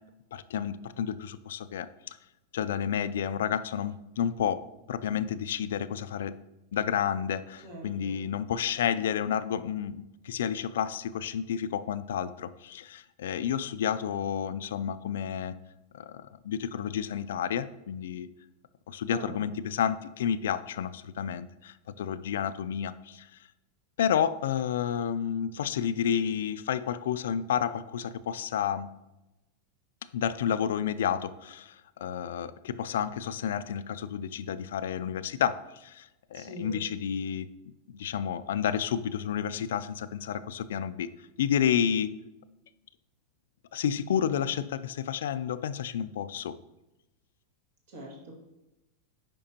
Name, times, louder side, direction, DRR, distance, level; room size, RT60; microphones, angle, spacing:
voice 1, 0.3-1.9 2.5-6.4 6.7-15.6 15.9-18.3 18.9-23.3 24.0-28.9 30.1-41.1 41.4-42.1 43.7-46.6, left 8 dB, 85° left, 14 dB, 0.3 m, -30 dB
voice 2, 7.6-8.2 19.1-19.4 36.3-36.8 47.9-48.4, right 1 dB, 60° right, -1 dB, 2.0 m, -42 dB
8.8 x 5.2 x 2.9 m, 0.97 s
supercardioid pair, 165°, 0 cm